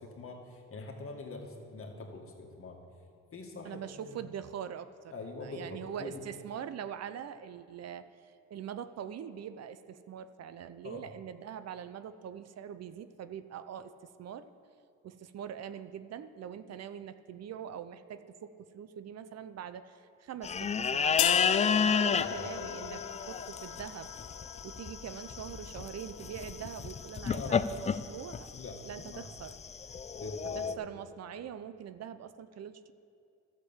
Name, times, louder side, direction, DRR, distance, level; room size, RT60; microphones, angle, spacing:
voice 1, 0.0-2.8 3.3-4.2 5.1-6.3 10.8-11.1 22.1-22.7 27.2-28.2 28.5-29.3 30.1-30.8, left 3 dB, 45° left, 1 dB, 1.9 m, -44 dB
voice 2, 3.6-5.1 5.4-13.9 14.2-14.5 15.0-24.1 24.6-28.5 28.9-29.5 30.8-32.9, right 8 dB, 55° right, 12 dB, 0.6 m, -43 dB
sound 1, 20.4-30.7, left 6 dB, 25° left, 0.4 m, -32 dB
sound 2, 21.2-27.1, left 12 dB, 75° left, 0.6 m, -37 dB
12.0 x 6.8 x 7.2 m, 2.5 s
cardioid pair, 90°, 30 cm